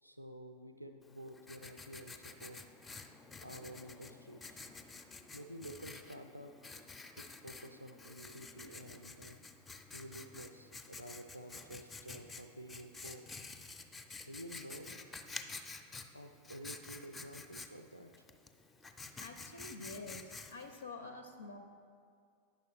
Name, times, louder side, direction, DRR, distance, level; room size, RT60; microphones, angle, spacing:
voice 1, 0.0-2.6 3.4-4.6 5.3-6.8 7.2-9.4 9.9-13.4 14.2-15.0 16.1-18.1, right 1 dB, 90° right, 6 dB, 0.4 m, -50 dB
Writing, 1.0-20.8, left 3 dB, 15° left, 0.4 m, -50 dB
voice 2, 19.2-21.6, left 3 dB, 75° left, 6 dB, 0.4 m, -48 dB
9.3 x 6.4 x 3.3 m, 2.3 s
figure-of-eight pair, 90°, 0 cm